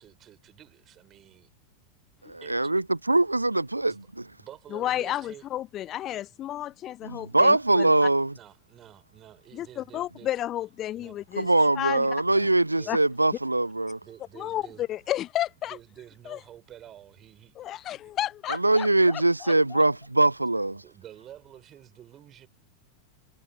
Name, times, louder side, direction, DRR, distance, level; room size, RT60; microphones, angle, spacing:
voice 1, 0.0-1.5 2.4-2.7 3.8-4.1 4.4-5.4 7.3-7.6 7.9-10.3 10.9-11.2 12.2-13.0 14.0-14.9 15.7-17.9 20.7-22.5, right 11 dB, 30° right, 3.9 m, -50 dB
voice 2, 2.3-2.8 3.1-4.3 7.1-8.3 11.4-14.0 18.6-20.8, right 2 dB, 85° right, 0.3 m, -22 dB
voice 3, 4.7-8.1 9.5-11.5 11.8-12.1 12.9-13.0 14.4-15.8 16.3-16.4 17.6-19.8, left 12 dB, 30° left, 0.4 m, -32 dB
figure-of-eight pair, 90°, 0 cm